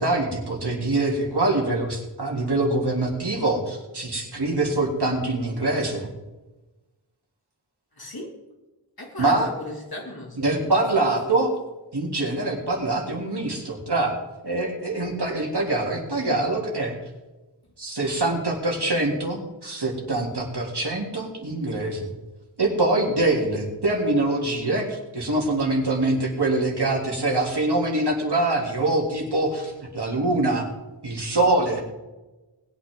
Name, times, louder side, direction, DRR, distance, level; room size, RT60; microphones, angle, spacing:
voice 1, 0.0-6.1 9.2-9.5 10.4-11.5 11.9-14.2 14.4-16.9 17.8-22.1 22.6-30.7 31.0-31.8, right 2 dB, 60° right, -1 dB, 3.3 m, -24 dB
voice 2, 8.0-8.4 9.0-10.6, left 1 dB, 55° left, 0 dB, 3.0 m, -37 dB
20.5 x 9.1 x 3.9 m, 1.1 s
wide cardioid pair, 50°, 44 cm